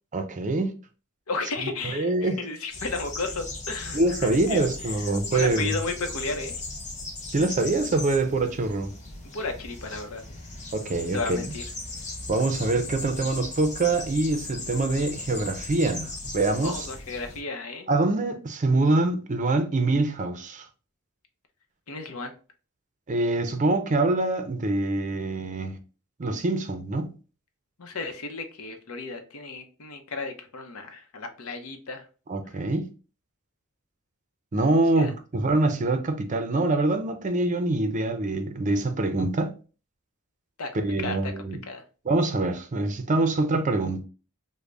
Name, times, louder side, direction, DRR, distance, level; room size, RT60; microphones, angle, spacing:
voice 1, 0.1-0.7 1.6-2.4 3.9-5.8 7.2-8.9 10.7-11.4 12.3-16.9 17.9-20.7 23.1-25.8 26.2-27.2 32.3-32.9 34.5-39.5 40.7-41.6 42.0-44.0, right 2 dB, 35° right, 0.5 m, -25 dB
voice 2, 1.3-4.7 5.3-6.6 9.3-10.2 11.1-11.7 16.6-17.9 21.9-22.3 27.8-32.1 35.0-35.1 40.6-40.7 41.0-41.3 41.7-41.8, left 3 dB, 80° left, 0.7 m, -33 dB
sound 1, 2.7-17.4, left 2 dB, 35° left, 0.8 m, -37 dB
3.3 x 2.1 x 3.7 m
head